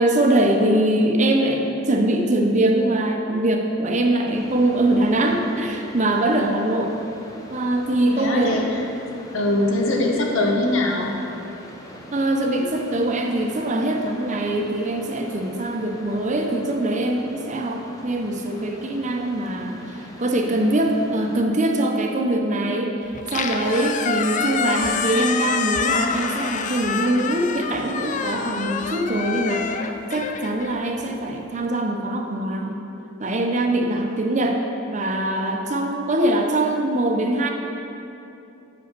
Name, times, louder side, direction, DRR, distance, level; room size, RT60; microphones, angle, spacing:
voice 1, 0.0-7.0 7.5-8.6 12.1-23.0 23.3-29.8 30.1-32.8 33.2-34.6 34.9-37.5, right 1 dB, 40° right, 2 dB, 0.7 m, -22 dB
sound 1, 4.3-21.4, left 1 dB, 20° left, 0.7 m, -43 dB
voice 2, 8.1-8.8 9.3-11.2, left 2 dB, 85° left, 0 dB, 1.0 m, -22 dB
Squeak, 23.1-31.4, left 6 dB, 40° left, 0.3 m, -27 dB
6.2 x 5.1 x 6.9 m, 2.8 s
head